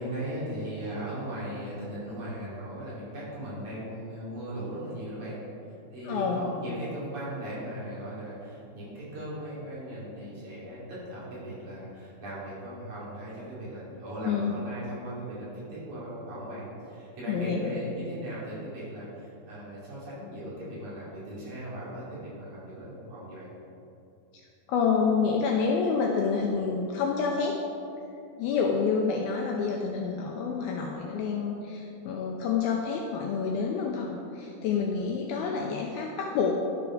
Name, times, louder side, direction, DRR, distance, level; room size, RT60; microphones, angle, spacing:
voice 1, 0.0-5.4 5.9-23.5, right 1 dB, 50° right, -8 dB, 3.9 m, -38 dB
voice 2, 6.0-6.4 14.2-14.6 17.3-17.7 24.7-27.6 28.4-36.5, left 5 dB, 90° left, 1 dB, 2.2 m, -28 dB
12.5 x 7.0 x 4.9 m, 2.7 s
omnidirectional pair, 5.0 m